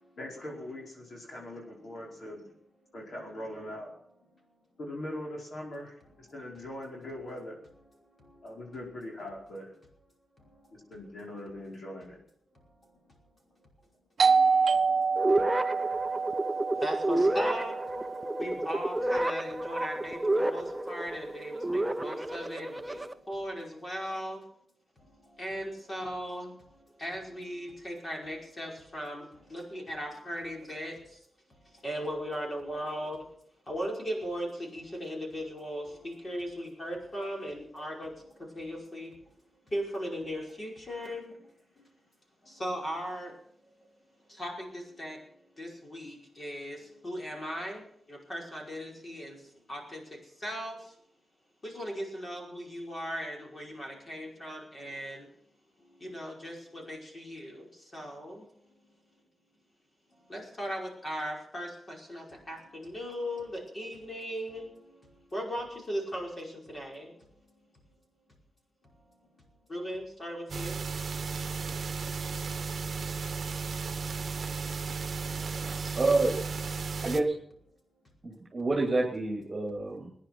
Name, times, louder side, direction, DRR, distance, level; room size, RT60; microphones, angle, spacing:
voice 1, 0.2-2.6 2.9-3.9 4.8-7.6 8.4-9.7 10.9-12.2, left 1 dB, 60° left, -1 dB, 5.0 m, -41 dB
Doorbell, 14.2-19.6, right 5 dB, 70° right, 0.6 m, -28 dB
sound 1, 15.2-23.1, right 1 dB, 10° right, 0.7 m, -30 dB
voice 2, 16.8-17.8 18.4-24.4 25.4-26.6 27.0-31.0 31.8-33.2 33.7-38.1 38.4-39.1 39.7-41.4 42.5-43.3 44.4-45.2 45.6-46.8 47.0-49.4 49.7-50.8 51.6-55.3 56.0-57.7 57.9-58.4 60.3-64.7 65.3-67.1 69.7-70.8, equal, 30° left, -1 dB, 5.3 m, -38 dB
sound 2, 70.5-77.2, right 5 dB, 50° right, 1.1 m, -34 dB
voice 3, 75.4-76.3 77.0-77.3 78.2-80.1, right 2 dB, 25° right, -1 dB, 2.7 m, -28 dB
20.0 x 10.5 x 6.1 m, 0.68 s
wide cardioid pair, 145°, 0 cm